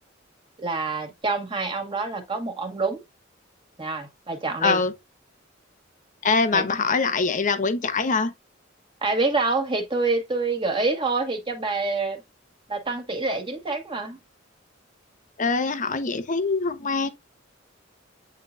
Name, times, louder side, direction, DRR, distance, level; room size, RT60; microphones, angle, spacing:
voice 1, 0.6-3.0 3.8-4.8 6.5-6.6 9.0-12.2 12.7-14.2, right 3 dB, 25° right, 1.9 m, -26 dB
voice 2, 4.6-4.9 6.2-8.3 15.4-17.1, left 4 dB, 40° left, 0.9 m, -23 dB
9.0 x 3.9 x 2.6 m
head